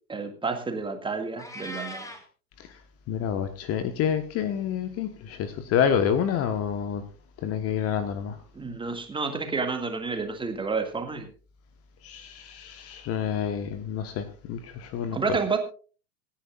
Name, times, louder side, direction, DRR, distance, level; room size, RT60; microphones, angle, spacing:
voice 1, 0.1-2.1 8.5-11.3 15.1-15.6, right 4 dB, 10° right, 2.0 m, -30 dB
Meow, 1.4-2.3, equal, 5° left, 2.1 m, -38 dB
voice 2, 3.1-7.0 7.4-8.4 12.0-15.4, left 8 dB, 30° left, 1.3 m, -28 dB
26.0 x 10.0 x 2.4 m
figure-of-eight pair, 100°, 50 cm